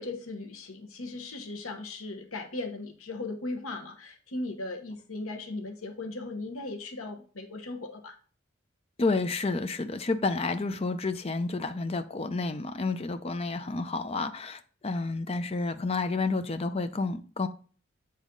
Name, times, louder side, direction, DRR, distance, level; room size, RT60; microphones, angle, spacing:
voice 1, 0.0-8.1, left 2 dB, 85° left, 1.0 m, -37 dB
voice 2, 9.0-17.5, left 3 dB, 30° left, 0.5 m, -30 dB
8.2 x 4.1 x 3.7 m
head